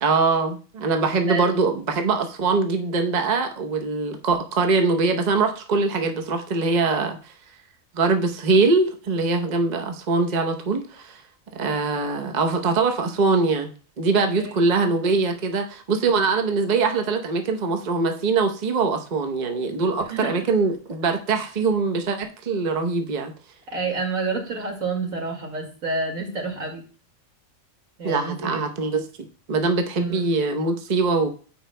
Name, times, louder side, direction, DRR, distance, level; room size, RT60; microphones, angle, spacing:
voice 1, 0.0-7.3 7.9-11.2 11.6-13.7 14.0-23.3 28.0-29.0 29.5-31.3, right 4 dB, 35° right, 4 dB, 0.9 m, -22 dB
voice 2, 1.2-1.6 14.2-14.5 20.0-20.3 23.7-26.8 28.0-28.7 30.0-30.2, right 3 dB, 85° right, 0 dB, 2.5 m, -29 dB
14.0 x 4.8 x 2.2 m, 0.40 s
omnidirectional pair, 1.4 m